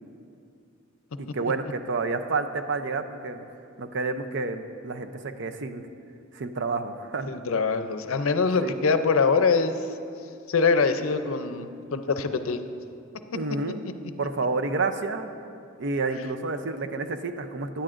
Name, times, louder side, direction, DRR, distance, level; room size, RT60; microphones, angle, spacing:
voice 1, 1.2-3.4 3.8-5.1 5.4-5.8 6.3-7.3 8.6-8.7 13.3-13.9 14.2-15.3 15.8-17.8, right 3 dB, 60° right, 8 dB, 0.6 m, -29 dB
voice 2, 7.3-9.7 10.5-12.6, left 4 dB, 70° left, 9 dB, 0.5 m, -23 dB
16.5 x 10.0 x 2.5 m, 2.5 s
head